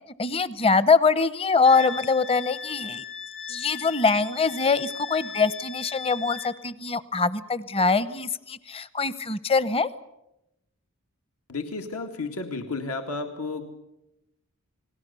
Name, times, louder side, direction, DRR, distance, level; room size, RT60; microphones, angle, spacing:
voice 1, 0.2-3.0 3.5-9.9, left 4 dB, 25° left, 16 dB, 0.8 m, -23 dB
Wind instrument woodwind instrument, 1.6-6.5, left 6 dB, 55° left, 3.7 m, -38 dB
voice 2, 11.5-13.6, left 3 dB, 80° left, 5 dB, 2.1 m, -32 dB
29.5 x 20.5 x 6.9 m, 0.88 s
head